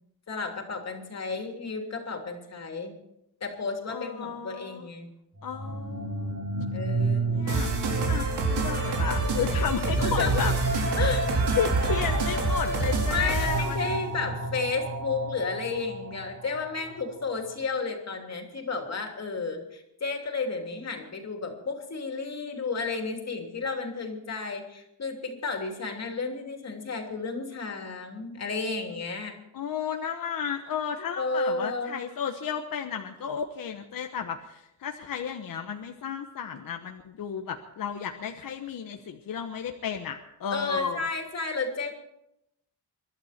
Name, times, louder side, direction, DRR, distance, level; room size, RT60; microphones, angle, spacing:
voice 1, 0.3-3.0 3.4-5.1 6.7-7.4 10.0-10.5 10.9-11.3 13.1-29.4 31.2-32.0 40.5-41.9, left 4 dB, 40° left, 3 dB, 3.2 m, -32 dB
voice 2, 3.9-4.9 5.4-6.4 7.3-10.5 11.6-13.8 29.5-41.0, left 7 dB, 60° left, 5 dB, 1.2 m, -33 dB
sound 1, 5.4-17.2, right 2 dB, 40° right, 4.2 m, -32 dB
sound 2, 7.5-13.8, right 3 dB, 80° right, 4.3 m, -27 dB
23.5 x 12.0 x 4.4 m, 0.84 s
cardioid pair, 105°, 39 cm